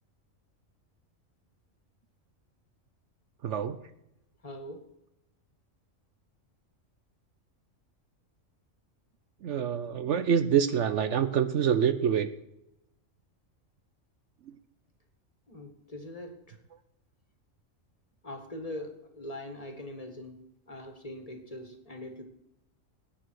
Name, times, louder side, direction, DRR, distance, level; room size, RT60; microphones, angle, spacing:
voice 1, 3.4-3.8 9.4-12.3, right 8 dB, 65° right, 11 dB, 1.0 m, -26 dB
voice 2, 4.4-4.8 15.5-16.6 18.2-22.2, left 1 dB, 25° left, 5 dB, 1.8 m, -42 dB
20.0 x 9.0 x 4.7 m, 0.84 s
omnidirectional pair, 1.4 m